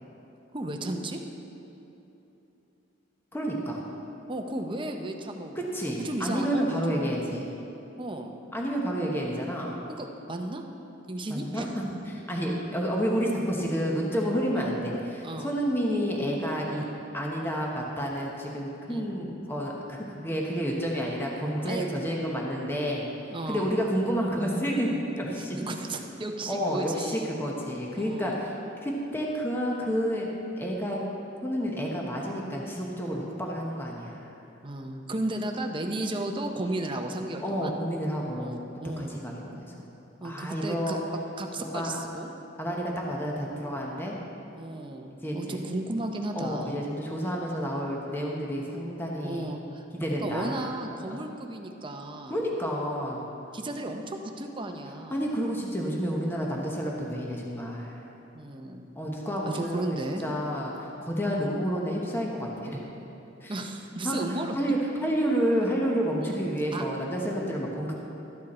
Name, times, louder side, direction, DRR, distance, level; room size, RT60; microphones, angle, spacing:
voice 1, 0.5-1.2 4.3-5.6 5.8-7.0 8.0-8.3 10.0-10.6 11.1-11.8 14.5-14.7 15.2-15.5 18.9-19.1 21.6-21.9 23.3-23.7 25.4-27.3 27.9-28.4 34.6-37.7 38.4-39.2 40.2-41.0 41.4-42.3 44.5-46.7 49.2-49.8 50.2-52.4 53.5-55.2 58.3-58.9 59.5-60.2 63.5-64.6 66.2-66.4 66.7-66.8, right 1 dB, 25° right, 4 dB, 0.7 m, -34 dB
voice 2, 3.3-3.8 5.5-7.5 8.5-9.8 11.3-16.9 17.1-23.1 23.5-25.6 26.5-28.5 28.8-30.3 30.6-31.0 31.4-34.3 37.4-38.6 39.0-39.9 40.2-41.0 41.6-42.1 42.6-44.2 45.2-45.7 46.3-49.5 49.9-51.0 52.3-53.3 55.1-58.0 58.9-62.9 63.4-63.6 64.0-68.0, equal, 10° left, -2 dB, 1.0 m, -30 dB
13.0 x 9.1 x 4.3 m, 3.0 s
head